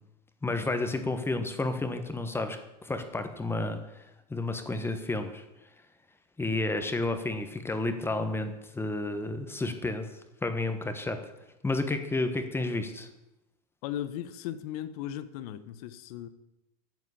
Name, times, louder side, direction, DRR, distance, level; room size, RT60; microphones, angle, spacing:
voice 1, 0.4-4.0 4.3-5.4 6.4-10.1 10.4-11.2 11.6-13.1, left 2 dB, 10° left, 7 dB, 1.3 m, -31 dB
voice 2, 13.8-16.3, left 11 dB, 65° left, 13 dB, 1.0 m, -37 dB
9.5 x 7.5 x 8.6 m, 0.95 s
hypercardioid pair, 110°, 21 cm